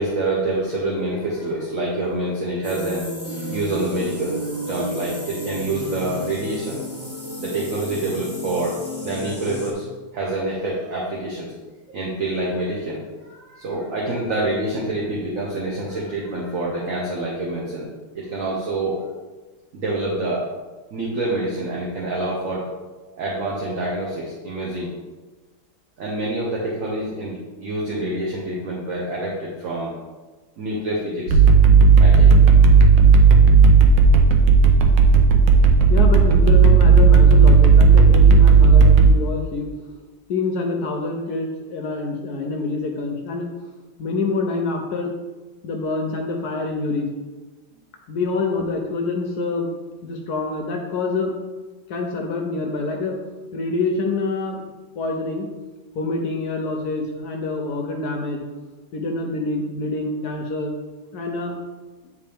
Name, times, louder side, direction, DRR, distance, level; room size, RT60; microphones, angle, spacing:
voice 1, 0.0-3.1 3.5-6.8 7.4-11.5 11.9-17.9 18.1-19.0 19.7-20.4 20.9-22.7 23.1-24.9 26.0-29.9 30.6-31.4 32.0-32.3, right 2 dB, 50° right, -4 dB, 1.1 m, -26 dB
sound 1, 2.6-9.7, equal, 15° right, 0.5 m, -32 dB
sound 2, 31.3-39.1, right 5 dB, 70° right, 1.3 m, -12 dB
voice 2, 35.9-39.7 40.3-43.5 44.0-45.1 45.6-47.1 48.1-49.7 50.0-51.3 51.9-53.2 53.5-54.6 55.0-55.5 55.9-58.5 58.9-60.7 61.1-61.6, left 3 dB, 65° left, 2 dB, 1.0 m, -26 dB
9.3 x 3.3 x 3.4 m, 1.2 s
omnidirectional pair, 2.2 m